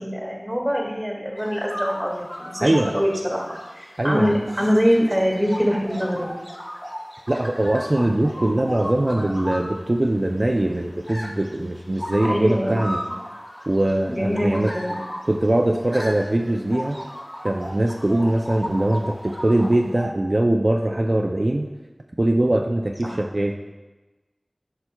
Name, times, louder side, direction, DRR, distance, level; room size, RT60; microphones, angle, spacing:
voice 1, 0.0-3.5 3.7-6.3 12.3-12.8 14.0-15.0 23.0-23.2, equal, 5° right, -1 dB, 1.8 m, -23 dB
sound 1, 1.4-20.1, equal, 15° left, 0.9 m, -35 dB
voice 2, 2.6-2.9 4.0-4.3 7.3-13.0 13.7-14.7 15.3-17.0 17.4-21.7 22.2-23.5, right 1 dB, 50° right, 2 dB, 0.4 m, -21 dB
9.6 x 5.8 x 2.3 m, 1.2 s
wide cardioid pair, 40°, 0 cm